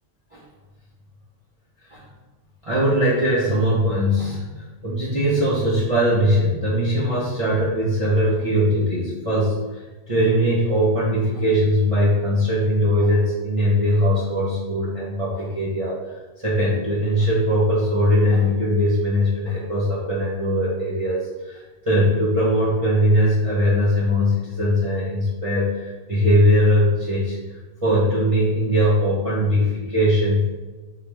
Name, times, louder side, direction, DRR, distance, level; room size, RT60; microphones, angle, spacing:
voice 1, 2.6-27.4 27.8-30.4, equal, 30° right, -7 dB, 0.7 m, -20 dB
4.9 x 3.0 x 3.3 m, 1.3 s
omnidirectional pair, 1.4 m